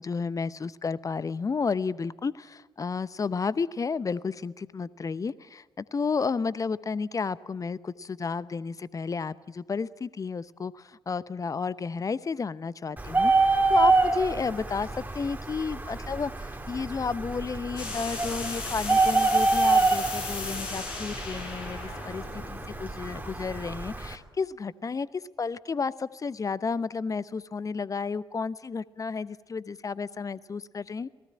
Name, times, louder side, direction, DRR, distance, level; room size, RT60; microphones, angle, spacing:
voice 1, 0.0-31.1, left 5 dB, 30° left, 19 dB, 0.8 m, -32 dB
Bird, 13.0-24.1, right 3 dB, 15° right, 2.4 m, -27 dB
sound 1, 17.8-23.4, left 3 dB, 75° left, 5.2 m, -37 dB
27.0 x 19.0 x 8.8 m, 1.2 s
figure-of-eight pair, 45°, 12 cm